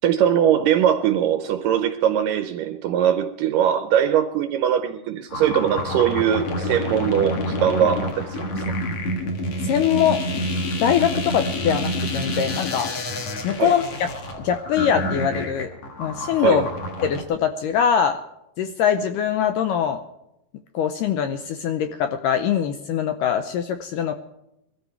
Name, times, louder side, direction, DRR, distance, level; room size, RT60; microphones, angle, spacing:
voice 1, 0.0-8.6 13.6-13.8 16.4-16.6, right 9 dB, 80° right, 2.0 m, -21 dB
sound 1, 5.3-17.2, left 1 dB, 50° left, 2.2 m, -28 dB
voice 2, 9.6-10.4 10.8-12.9 13.4-13.8 14.4-15.7 16.0-16.7 17.0-18.2 18.6-20.0 20.7-24.1, left 8 dB, 80° left, 2.0 m, -22 dB
21.5 x 13.5 x 4.6 m
omnidirectional pair, 4.5 m